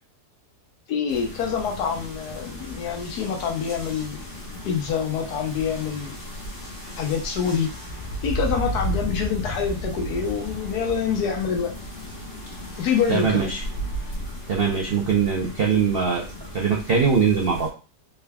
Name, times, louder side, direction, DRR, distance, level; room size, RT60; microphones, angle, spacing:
voice 1, 0.9-4.2 4.6-6.2 7.0-7.7 8.2-11.7 12.8-13.5 15.4-15.5, left 7 dB, 75° left, 3 dB, 1.3 m, -26 dB
sound 1, 1.1-17.7, equal, 45° left, 1.4 m, -34 dB
voice 2, 13.1-13.6 14.5-16.2 16.5-17.7, right 6 dB, 65° right, -1 dB, 0.5 m, -21 dB
3.8 x 3.4 x 2.2 m, 0.33 s
omnidirectional pair, 1.7 m